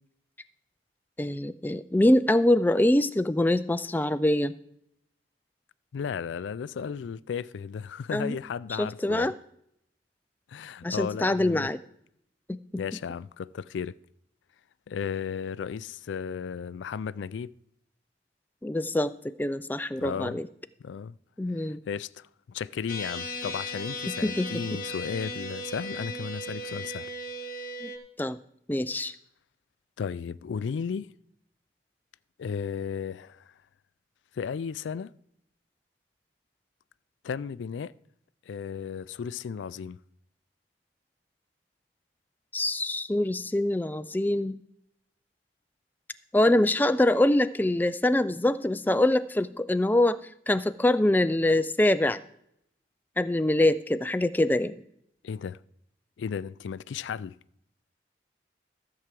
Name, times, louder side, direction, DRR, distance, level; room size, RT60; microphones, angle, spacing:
voice 1, 1.2-4.5 8.1-8.4 8.8-9.3 10.8-11.8 12.5-12.6 18.6-20.5 21.4-21.8 24.2-24.5 27.8-27.9 28.2-28.4 28.7-29.1 42.5-44.6 46.3-50.2 50.5-52.2 53.2-54.8, left 1 dB, 10° left, 0.3 m, -24 dB
voice 2, 5.9-9.3 10.5-11.7 12.8-13.9 14.9-17.5 20.0-20.4 20.8-21.2 21.5-27.1 30.0-31.1 32.4-33.5 34.3-35.1 37.2-37.9 38.5-40.0 55.2-55.6 56.2-57.4, left 6 dB, 90° left, 0.3 m, -34 dB
sound 1, 22.9-28.0, left 1 dB, 50° left, 1.6 m, -36 dB
13.5 x 4.7 x 7.5 m
head